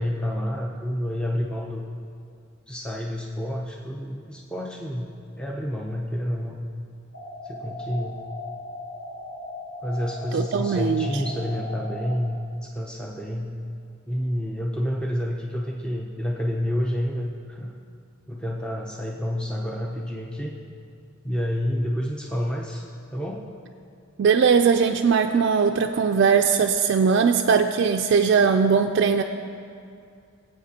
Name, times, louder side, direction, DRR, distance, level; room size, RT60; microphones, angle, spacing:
voice 1, 0.0-1.8 2.7-6.6 7.4-8.2 9.8-13.5 14.1-17.7 18.3-20.6 21.2-22.8 23.1-23.4, equal, 5° left, -1 dB, 0.5 m, -29 dB
sound 1, 7.1-12.1, left 2 dB, 80° left, 2.3 m, -37 dB
voice 2, 10.3-11.1 24.2-29.2, right 6 dB, 60° right, 5 dB, 0.3 m, -20 dB
18.0 x 8.2 x 2.8 m, 2.4 s
head